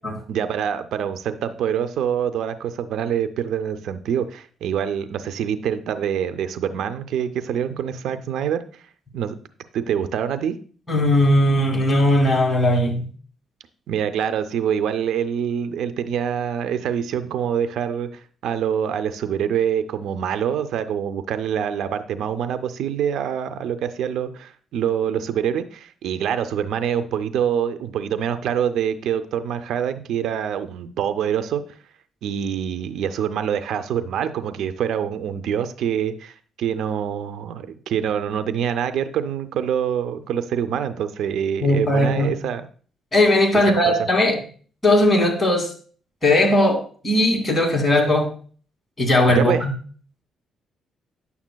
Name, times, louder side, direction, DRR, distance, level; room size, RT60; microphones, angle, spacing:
voice 1, 0.3-8.8 9.1-9.4 9.7-10.6 13.9-31.6 32.2-42.7 43.9-44.1 49.3-49.6, right 8 dB, 80° right, 0.5 m, -25 dB
voice 2, 10.9-13.1 41.6-42.4 43.1-44.4 44.8-45.7 46.2-48.3 49.0-49.7, left 1 dB, 20° left, 2.3 m, -18 dB
9.5 x 7.1 x 2.2 m
cardioid pair, 90°, 0 cm